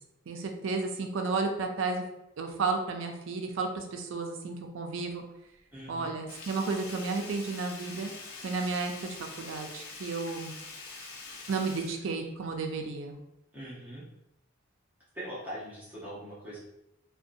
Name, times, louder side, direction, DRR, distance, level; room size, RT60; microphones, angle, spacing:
voice 1, 0.3-2.0 2.4-5.2 5.9-8.1 8.4-8.9 9.4-10.5 11.5-13.2, right 4 dB, 70° right, 4 dB, 0.4 m, -32 dB
voice 2, 5.7-6.2 13.5-14.0 15.1-16.6, equal, 10° right, -10 dB, 0.7 m, -41 dB
Sink (filling or washing), 6.3-12.8 13.1-13.2, left 3 dB, 85° left, 0.5 m, -45 dB
2.6 x 2.2 x 2.5 m, 0.86 s
head